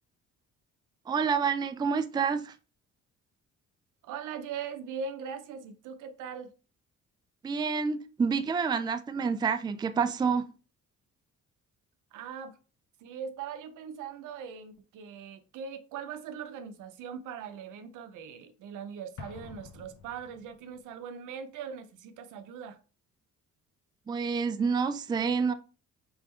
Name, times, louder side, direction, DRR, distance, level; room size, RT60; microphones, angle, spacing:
voice 1, 1.1-2.5 7.4-10.5 24.1-25.5, right 5 dB, 15° right, 0.3 m, -28 dB
voice 2, 4.0-6.5 12.1-12.6 13.0-22.8, right 6 dB, 85° right, 0.6 m, -40 dB
Explosion, 19.2-20.8, left 6 dB, 75° left, 0.7 m, -48 dB
3.5 x 3.5 x 3.2 m
cardioid pair, 90°, 30 cm